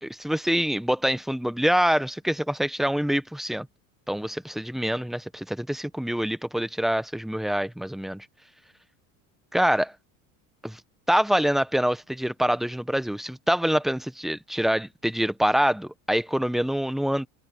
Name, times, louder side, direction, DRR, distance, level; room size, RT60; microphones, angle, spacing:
voice 1, 0.0-3.7 4.1-8.2 9.5-9.9 10.6-10.8 11.1-17.3, equal, ahead, 1.0 m, -25 dB
open air
cardioid pair, 125°, 37 cm